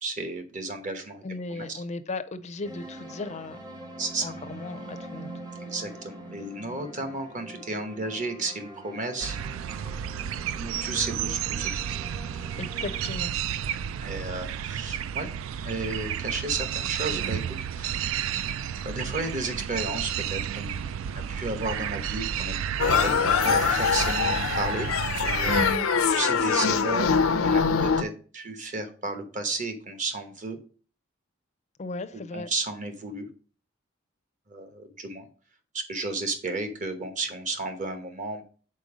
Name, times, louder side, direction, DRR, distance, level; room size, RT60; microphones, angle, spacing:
voice 1, 0.0-1.8 4.0-4.3 5.6-9.4 10.5-11.7 14.0-15.3 15.6-17.4 17.7-18.4 18.8-22.6 23.0-23.1 23.4-24.9 25.2-25.6 26.1-30.6 32.1-33.3 34.5-35.3 35.7-38.4, right 2 dB, 40° right, 1.0 m, -33 dB
voice 2, 1.2-3.6 4.2-5.3 12.6-13.3 25.5-25.9 31.8-32.5, left 2 dB, 35° left, 0.5 m, -35 dB
sound 1, 2.6-13.2, right 2 dB, 20° right, 0.8 m, -43 dB
sound 2, 9.2-25.8, right 9 dB, 70° right, 0.3 m, -31 dB
sound 3, 22.8-28.0, left 6 dB, 85° left, 0.6 m, -23 dB
5.3 x 4.4 x 4.9 m
head